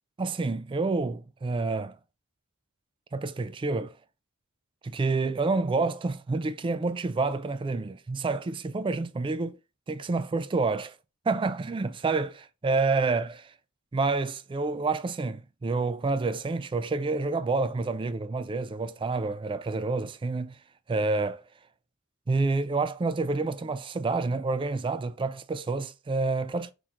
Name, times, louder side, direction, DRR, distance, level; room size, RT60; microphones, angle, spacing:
voice 1, 0.2-2.0 3.1-3.9 4.8-9.6 9.9-10.9 11.3-13.5 13.9-20.6 20.9-21.4 22.3-26.7, right 3 dB, 25° right, 0.3 m, -28 dB
5.6 x 3.1 x 2.4 m
head